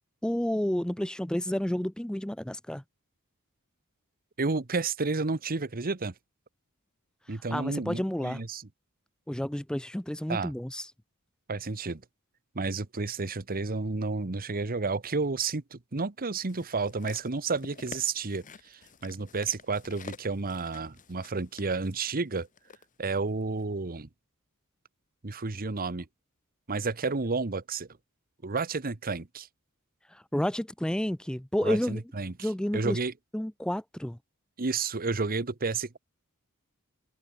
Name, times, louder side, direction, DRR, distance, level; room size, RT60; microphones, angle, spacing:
voice 1, 0.2-2.8 7.3-8.4 9.3-10.9 30.1-32.0 32.4-33.0 33.3-34.2, equal, 5° left, 0.4 m, -30 dB
voice 2, 4.4-6.1 7.3-8.6 10.3-10.5 11.5-12.0 12.5-22.5 23.0-24.1 25.2-26.1 26.7-27.9 28.4-29.5 31.6-33.1 34.6-36.0, right 4 dB, 40° right, 1.1 m, -31 dB
sound 1, 16.5-22.8 23.6-23.7, left 5 dB, 35° left, 1.0 m, -49 dB
head